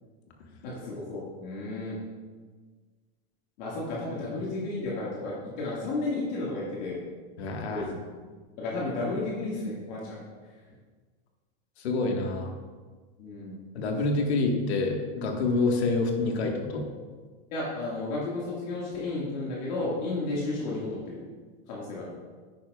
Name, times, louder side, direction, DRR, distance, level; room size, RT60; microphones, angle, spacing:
voice 1, 0.6-2.0 3.6-7.0 7.7-8.0 8.6-10.2 13.2-13.6 14.2-14.3 17.5-21.2 21.7-22.2, left 2 dB, 45° left, -5 dB, 1.9 m, -33 dB
voice 2, 7.4-7.9 11.8-12.5 13.7-16.8, left 3 dB, 75° left, 2 dB, 1.6 m, -27 dB
10.0 x 9.3 x 2.4 m, 1.4 s
supercardioid pair, 175°, 32 cm